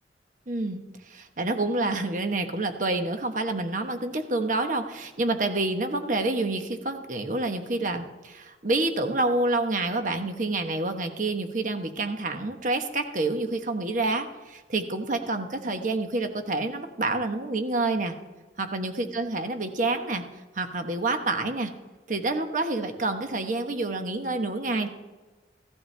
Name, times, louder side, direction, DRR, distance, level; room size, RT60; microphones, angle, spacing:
voice 1, 0.5-18.1 18.6-20.2 20.5-21.7 22.1-24.9, right 2 dB, 45° right, 6 dB, 1.1 m, -28 dB
16.0 x 12.0 x 3.3 m, 1.2 s
head